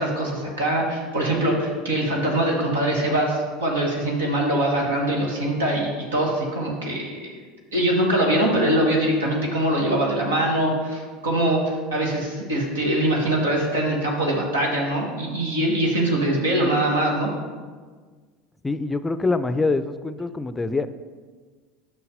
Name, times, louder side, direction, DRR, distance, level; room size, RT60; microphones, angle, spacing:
voice 1, 0.0-7.4 7.7-17.3, right 1 dB, 80° right, -1 dB, 1.4 m, -23 dB
voice 2, 18.6-20.9, left 3 dB, 15° left, 13 dB, 0.5 m, -24 dB
7.0 x 6.0 x 5.0 m, 1.5 s
hypercardioid pair, 75°, 0 cm